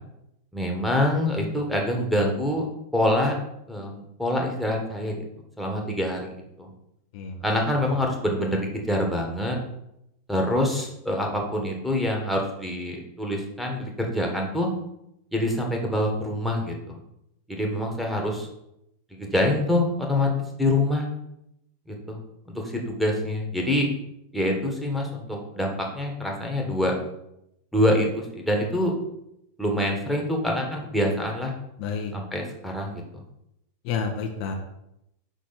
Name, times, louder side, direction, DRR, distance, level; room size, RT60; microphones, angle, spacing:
voice 1, 0.5-2.7 2.9-3.4 3.7-5.1 5.6-6.2 6.6-6.7 7.4-9.6 10.3-14.7 15.3-17.0 17.5-18.5 19.1-20.3 20.6-21.1 21.9-22.2 22.5-23.9 24.3-26.9 27.7-28.9 29.6-31.5 32.1-33.0, left 1 dB, ahead, -1 dB, 1.5 m, -25 dB
voice 2, 31.8-32.1 33.8-34.5, left 6 dB, 45° left, 3 dB, 0.9 m, -29 dB
6.1 x 5.7 x 4.2 m, 0.81 s
figure-of-eight pair, 90°, 0 cm